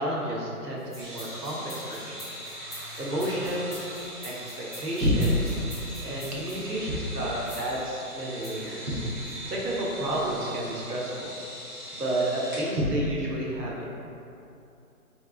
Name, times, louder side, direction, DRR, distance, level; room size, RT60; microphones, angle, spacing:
voice 1, 0.0-2.2 3.0-3.8 4.2-4.3 4.8-5.5 6.0-9.0 9.5-11.3 11.9-13.9, equal, 85° right, -4 dB, 1.3 m, -29 dB
sound 1, 0.8-6.6 7.5-7.8 8.4-8.7 9.3-9.4, equal, ahead, 0.4 m, -45 dB
sound 2, 1.0-12.7, right 1 dB, 30° right, 1.1 m, -41 dB
3.5 x 3.2 x 3.7 m, 2.7 s
hypercardioid pair, 165°, 46 cm